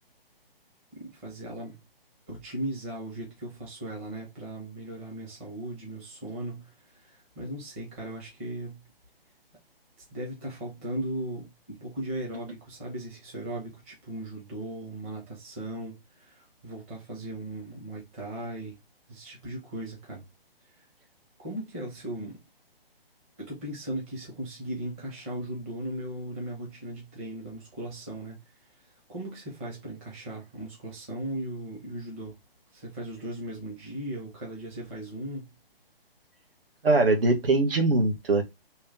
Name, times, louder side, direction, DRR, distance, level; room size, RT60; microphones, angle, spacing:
voice 1, 0.9-1.8 2.3-8.9 10.1-18.8 19.1-20.2 20.7-20.8 21.4-22.4 23.4-28.4 29.1-32.4 32.7-35.5, right 1 dB, 15° right, 0.8 m, -37 dB
voice 2, 36.8-38.4, right 3 dB, 70° right, 1.5 m, -22 dB
3.2 x 3.0 x 3.6 m
hypercardioid pair, 165°, 30 cm